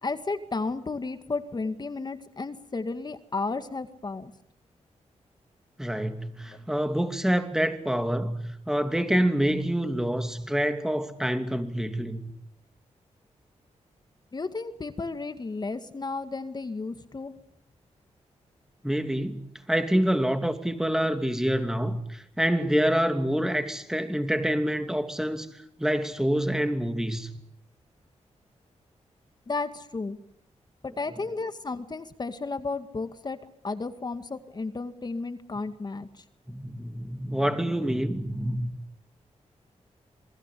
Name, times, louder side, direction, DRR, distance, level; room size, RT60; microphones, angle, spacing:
voice 1, 0.0-4.3 6.5-6.6 14.3-17.3 29.5-30.2 30.8-33.4 33.6-36.1, left 3 dB, 35° left, 2.1 m, -33 dB
voice 2, 5.8-12.3 18.8-25.5 25.8-27.3 36.5-38.8, equal, 5° right, 2.7 m, -27 dB
28.0 x 21.0 x 8.6 m
wide cardioid pair, 105°, 12 cm